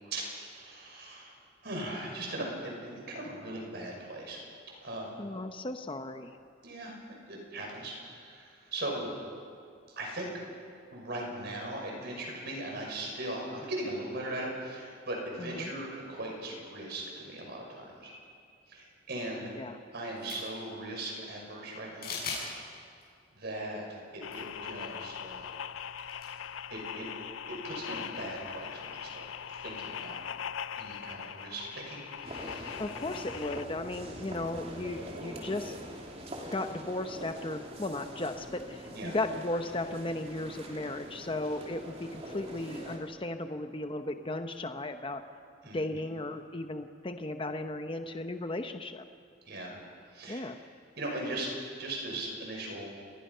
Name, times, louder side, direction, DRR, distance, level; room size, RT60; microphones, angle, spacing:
voice 1, 0.0-1.3 1.6-4.4 4.8-5.1 6.6-6.9 7.3-9.1 10.0-10.3 10.9-18.1 18.7-19.5 19.9-22.2 23.4-23.8 24.1-25.5 26.7-27.1 27.6-30.1 30.8-32.8 38.9-39.2 45.6-46.0 49.5-49.7 50.1-50.4 51.0-52.9, right 1 dB, 55° right, 0 dB, 6.1 m, -39 dB
voice 2, 5.2-6.3 15.4-15.7 19.6-19.8 32.8-35.8 36.5-45.2 45.7-49.0 50.3-50.6, left 2 dB, 25° left, 7 dB, 0.8 m, -35 dB
sound 1, 20.1-20.6 22.0-22.5 23.0-23.1 24.2-24.4 24.6-24.7 26.0-26.3, left 5 dB, 50° left, 7.8 m, -38 dB
sound 2, 24.2-33.7, left 8 dB, 90° left, 0.6 m, -41 dB
sound 3, 32.2-43.0, right 1 dB, 30° right, 2.9 m, -44 dB
29.0 x 20.5 x 5.6 m, 2.3 s
head